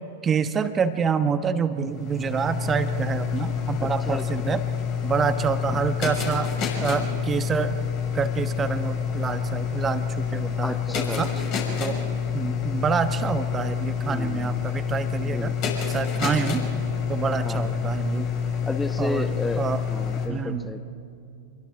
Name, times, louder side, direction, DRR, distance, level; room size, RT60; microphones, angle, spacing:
voice 1, 0.2-4.6 5.0-6.5 6.8-7.7 8.1-11.3 11.8-12.0 12.3-15.6 15.9-16.7 17.1-18.3 19.0-19.3 19.6-19.8 20.3-20.7, right 6 dB, 25° right, 10 dB, 1.1 m, -27 dB
sound 1, 1.8-20.3, left 7 dB, 45° left, 6.6 m, -28 dB
voice 2, 3.8-4.6 5.7-5.8 10.6-11.2 11.5-11.7 14.0-14.6 15.3-15.8 17.4-18.0 18.6-20.8, left 2 dB, 10° left, 9 dB, 0.9 m, -33 dB
28.0 x 22.5 x 4.8 m, 2.5 s
figure-of-eight pair, 95°, 0 cm